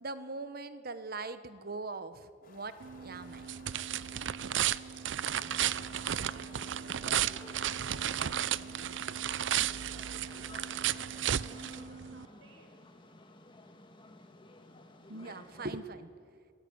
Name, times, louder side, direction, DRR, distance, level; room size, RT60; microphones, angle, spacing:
voice 1, 0.0-2.8 3.0-3.4 15.1-16.1, right 3 dB, 50° right, 12 dB, 1.2 m, -41 dB
sound 1, 2.4-11.8, left 2 dB, 50° left, 4.2 m, -57 dB
sound 2, 2.8-12.3, right 10 dB, 65° right, 0.5 m, -34 dB
voice 2, 5.2-7.5 8.1-12.9, right 2 dB, 90° right, 3 dB, 6.1 m, -61 dB
sound 3, 5.3-15.8, left 2 dB, 25° left, 1.8 m, -54 dB
27.0 x 18.5 x 9.7 m, 2.3 s
head